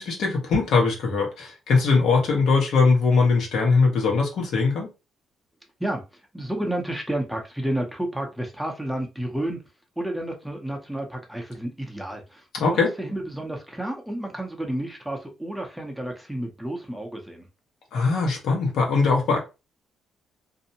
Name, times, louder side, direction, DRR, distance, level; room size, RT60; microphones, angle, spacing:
voice 1, 0.0-4.9 12.5-12.9 17.9-19.4, left 4 dB, 75° left, 1.1 m, -21 dB
voice 2, 6.3-9.6 10.0-17.4, right 1 dB, 5° right, 0.7 m, -31 dB
2.6 x 2.1 x 2.8 m
cardioid pair, 90°, 0 cm